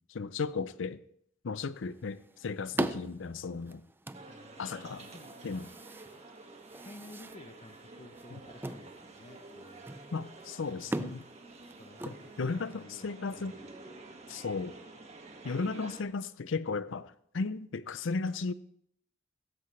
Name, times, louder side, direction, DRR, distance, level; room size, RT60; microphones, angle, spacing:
voice 1, 0.1-1.0 1.4-3.8 4.6-5.1 5.4-5.7 8.3-8.4 10.1-11.2 12.1-13.5 14.3-14.8 15.4-18.5, left 4 dB, 85° left, 0.6 m, -35 dB
sound 1, 1.7-12.8, right 1 dB, 10° right, 0.4 m, -42 dB
sound 2, 4.1-16.0, right 2 dB, 35° right, 1.8 m, -50 dB
voice 2, 4.3-4.7 5.1-5.4 6.8-9.8 10.9-11.2 11.8-13.5, left 1 dB, 35° left, 0.8 m, -53 dB
16.5 x 14.5 x 3.2 m
head